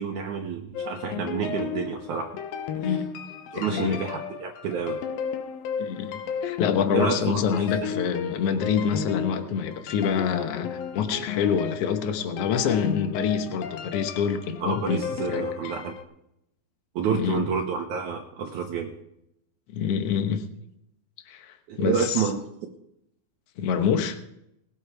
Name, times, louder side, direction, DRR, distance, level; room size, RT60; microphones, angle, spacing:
voice 1, 0.0-2.3 3.5-5.0 6.9-7.2 7.5-7.7 14.6-15.9 17.0-18.9 21.7-22.4, right 6 dB, 70° right, 2 dB, 2.2 m, -29 dB
sound 1, 0.7-16.0, left 7 dB, 90° left, 2.8 m, -34 dB
voice 2, 3.5-4.0 5.8-15.0 15.3-15.4 17.1-17.5 19.7-20.4 21.3-22.2 23.6-24.2, left 7 dB, 65° left, 7 dB, 1.6 m, -26 dB
19.5 x 8.2 x 4.7 m, 0.80 s
omnidirectional pair, 4.0 m